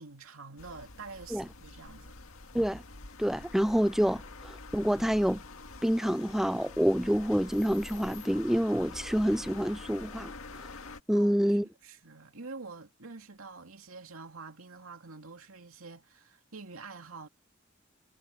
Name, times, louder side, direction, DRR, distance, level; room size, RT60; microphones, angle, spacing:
voice 1, 0.0-2.2 11.1-17.3, right 4 dB, 85° right, 2.5 m, -47 dB
sound 1, 0.6-11.0, left 3 dB, 85° left, 1.9 m, -46 dB
voice 2, 3.2-5.4 5.8-10.3 11.1-11.7, equal, ahead, 0.4 m, -27 dB
head